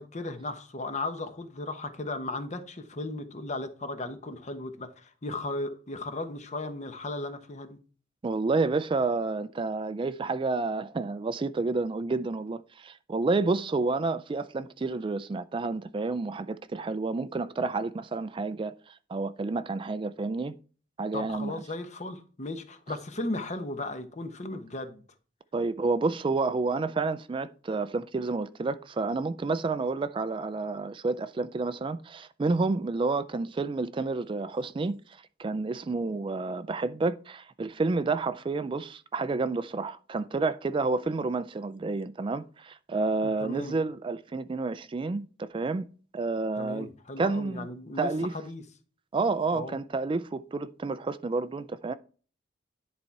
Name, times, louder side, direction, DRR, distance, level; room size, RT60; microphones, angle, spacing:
voice 1, 0.0-7.8 21.1-25.0 43.2-43.8 46.6-48.6 49.5-49.8, left 2 dB, 40° left, 1.0 m, -36 dB
voice 2, 8.2-20.6 21.0-21.5 25.5-45.9 46.1-46.9 47.2-47.7 48.0-48.3 49.1-51.9, right 3 dB, 30° right, 0.3 m, -30 dB
10.5 x 4.2 x 4.6 m
head